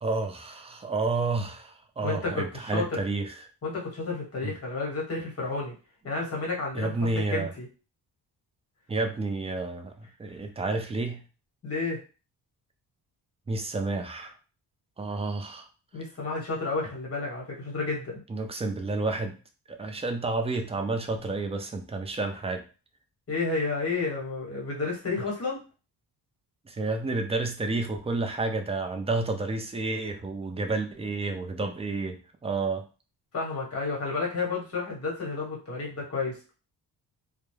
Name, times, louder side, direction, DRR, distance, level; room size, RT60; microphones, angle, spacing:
voice 1, 0.0-3.3 4.4-4.5 6.7-7.5 8.9-11.2 13.5-14.3 15.0-15.7 18.3-19.3 19.7-22.6 26.7-32.8, right 3 dB, 15° right, 5 dB, 0.3 m, -30 dB
voice 2, 2.0-3.0 3.6-5.7 6.0-6.9 7.3-7.7 11.6-12.0 15.9-18.2 23.3-25.6 33.3-36.5, left 3 dB, 35° left, -1 dB, 1.1 m, -31 dB
2.2 x 2.1 x 3.1 m, 0.34 s
cardioid pair, 105°, 42 cm